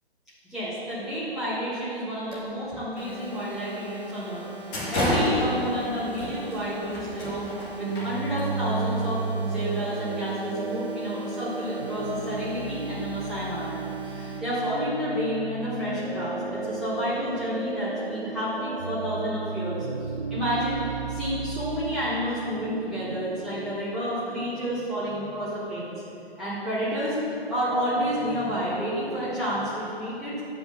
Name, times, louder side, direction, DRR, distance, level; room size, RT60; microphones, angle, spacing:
voice 1, 0.5-13.8 14.0-19.8 20.3-20.8 21.1-25.9 26.4-27.2 27.5-30.4, equal, ahead, -14 dB, 2.5 m, -30 dB
sound 1, 2.3-2.7 3.1-3.3 3.9-4.0 4.4-8.6, equal, 20° left, 1.8 m, -30 dB
sound 2, 3.0-14.4, right 4 dB, 40° right, 2.2 m, -41 dB
sound 3, 7.8-23.8, right 4 dB, 60° right, 0.9 m, -34 dB
9.6 x 5.2 x 7.2 m, 2.7 s
figure-of-eight pair, 145°, 31 cm